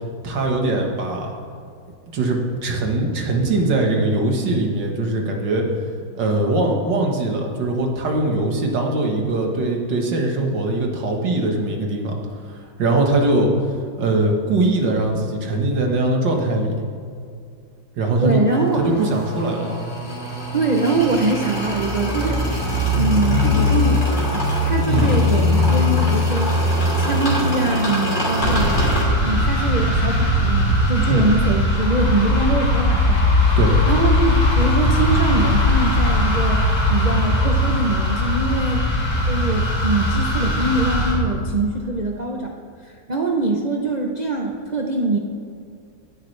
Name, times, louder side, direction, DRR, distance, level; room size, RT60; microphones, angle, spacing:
voice 1, 0.2-1.3 2.1-5.7 6.2-12.1 12.5-13.5 14.0-16.8 18.0-18.4 18.7-19.8 24.9-25.1 31.1-31.3 33.6-33.7, right 2 dB, 70° right, 1 dB, 2.1 m, -21 dB
voice 2, 18.2-18.8 20.5-22.6 23.0-26.6 27.0-28.8 29.2-33.6 33.9-38.9 39.3-42.5 42.8-45.2, right 2 dB, 50° right, 0 dB, 0.5 m, -23 dB
sound 1, 18.5-29.0, left 1 dB, 25° left, 2.6 m, -21 dB
sound 2, 28.4-41.1, left 1 dB, 60° left, 2.9 m, -19 dB
17.0 x 10.5 x 3.3 m, 2.3 s
omnidirectional pair, 2.0 m